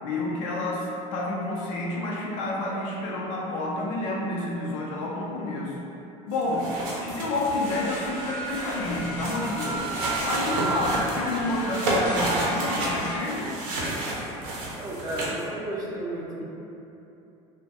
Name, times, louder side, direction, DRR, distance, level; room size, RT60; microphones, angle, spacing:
voice 1, 0.0-5.7 6.3-6.7 7.0-9.8 10.2-13.5, left 2 dB, 90° left, -3 dB, 0.5 m, -29 dB
sound 1, 6.3-15.4, right 1 dB, 75° right, 0.6 m, -31 dB
sound 2, 7.7-13.2, right 1 dB, 50° left, 0.7 m, -34 dB
voice 2, 14.7-16.4, right 1 dB, 25° right, -5 dB, 0.5 m, -33 dB
2.2 x 2.2 x 2.8 m, 2.9 s
supercardioid pair, 110°, 16 cm